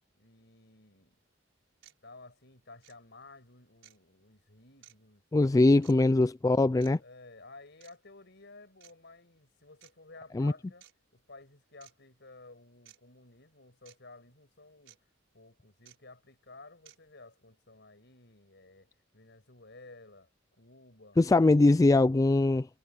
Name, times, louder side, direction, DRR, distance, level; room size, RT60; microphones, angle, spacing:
voice 1, 0.1-1.2 2.0-6.3 7.0-10.9 11.1-20.3 20.6-21.2, left 2 dB, 60° left, 7.2 m, -54 dB
sound 1, 1.1-1.2 1.8-2.0 2.8-3.0 3.8-4.0 4.8-5.0 5.8-6.0 6.8-6.9 7.8-8.0 8.8-8.9 9.8-9.9 10.8-10.9 11.8-11.9 12.9-13.0 13.9-14.0 14.9-15.0 15.9-16.0 16.9-17.0, right 12 dB, 70° right, 5.9 m, -56 dB
voice 2, 5.3-7.0 10.4-10.5 21.2-22.7, left 2 dB, 20° left, 0.3 m, -22 dB
head